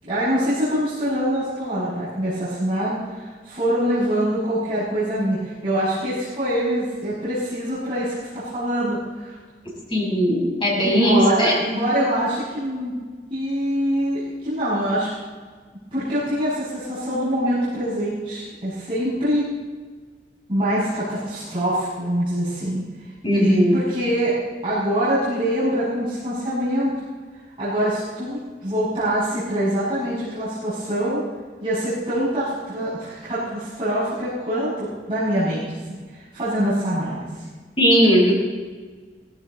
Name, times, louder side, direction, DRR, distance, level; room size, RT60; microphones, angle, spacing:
voice 1, 0.0-9.4 10.8-12.9 13.3-15.1 15.9-19.4 20.5-22.8 23.3-24.3 24.6-27.0 27.6-31.2 31.6-35.6 36.1-37.4, equal, 30° right, -13 dB, 6.2 m, -24 dB
voice 2, 9.9-11.5 23.2-23.8 37.8-38.3, equal, 30° left, -4 dB, 6.0 m, -18 dB
17.5 x 15.5 x 4.1 m, 1.5 s
head